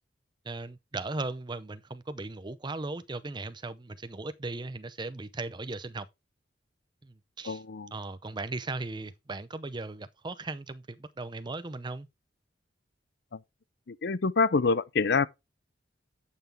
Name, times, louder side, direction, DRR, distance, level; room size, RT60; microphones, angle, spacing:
voice 1, 0.5-6.1 7.0-7.6 7.9-12.1, right 3 dB, 25° right, 0.6 m, -37 dB
voice 2, 7.5-7.9 13.9-15.3, left 4 dB, 60° left, 0.6 m, -26 dB
11.0 x 5.9 x 3.4 m
head